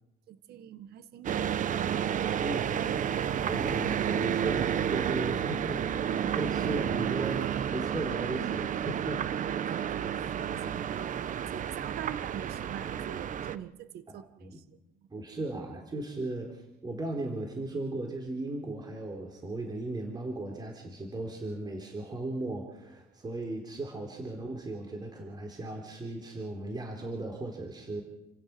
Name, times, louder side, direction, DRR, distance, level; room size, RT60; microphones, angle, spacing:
voice 1, 0.3-1.5 1.9-2.5 9.3-14.6 15.0-15.3, right 10 dB, 70° right, 12 dB, 1.5 m, -44 dB
sound 1, 1.2-13.6, right 9 dB, 50° right, 1.1 m, -31 dB
voice 2, 3.5-9.4 14.1-14.6 15.1-28.0, right 2 dB, 25° right, 2 dB, 3.9 m, -37 dB
29.5 x 16.0 x 6.1 m, 0.88 s
cardioid pair, 110°, 17 cm